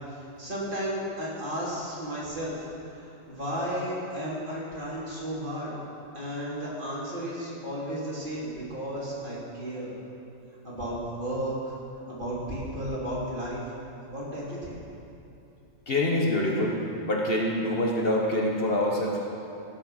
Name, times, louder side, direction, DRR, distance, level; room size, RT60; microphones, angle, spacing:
voice 1, 0.4-2.6 2.9-5.7 6.1-9.9 10.6-11.7 12.1-13.6 14.1-14.8, equal, 40° right, -7 dB, 3.2 m, -33 dB
voice 2, 15.9-16.8 17.1-19.3, left 1 dB, 50° left, -1 dB, 1.4 m, -25 dB
16.5 x 6.6 x 6.4 m, 2.7 s
omnidirectional pair, 1.3 m